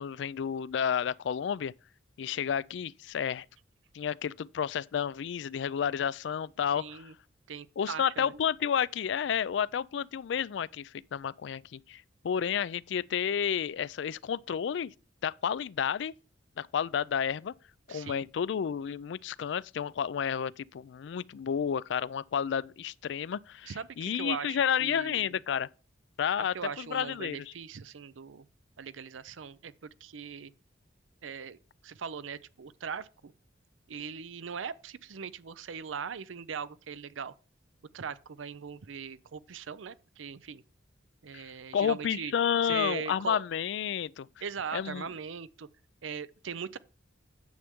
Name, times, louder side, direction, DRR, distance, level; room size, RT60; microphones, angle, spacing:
voice 1, 0.0-1.7 2.2-3.5 3.9-7.1 7.8-14.9 15.2-16.1 16.6-17.5 17.9-25.7 26.2-27.5 41.3-41.5 41.7-44.3 44.7-45.1, left 8 dB, 65° left, 0.3 m, -31 dB
voice 2, 6.8-7.1 7.5-8.4 17.9-18.2 23.6-25.4 26.4-28.5 28.8-30.5 31.2-31.6 31.8-33.3 33.9-37.3 37.9-40.6 41.2-42.3 42.6-43.5 44.4-45.7 46.0-46.8, right 6 dB, 85° right, 0.5 m, -40 dB
9.5 x 7.6 x 3.6 m
head